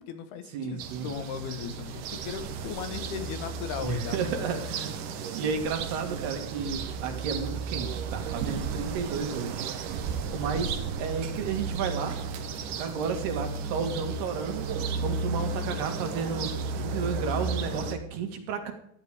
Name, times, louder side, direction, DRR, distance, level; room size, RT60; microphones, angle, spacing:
voice 1, 0.0-4.6, left 7 dB, 80° left, 9 dB, 3.5 m, -37 dB
voice 2, 0.5-1.1 3.8-9.9 10.3-12.2 12.7-14.7 15.0-16.5 16.8-18.7, right 5 dB, 90° right, 5 dB, 4.0 m, -32 dB
sound 1, 0.8-18.0, right 5 dB, 65° right, 2.4 m, -34 dB
sound 2, 6.7-17.6, equal, 45° right, 4.5 m, -51 dB
14.0 x 10.5 x 5.0 m, 0.72 s
omnidirectional pair, 4.5 m